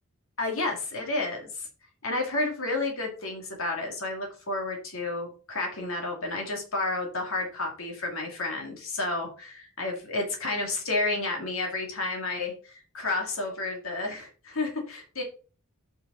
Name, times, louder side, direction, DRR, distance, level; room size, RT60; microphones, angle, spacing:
voice 1, 0.4-1.7 2.0-15.2, left 2 dB, 70° left, 1 dB, 2.5 m, -31 dB
8.0 x 5.6 x 4.1 m, 0.37 s
head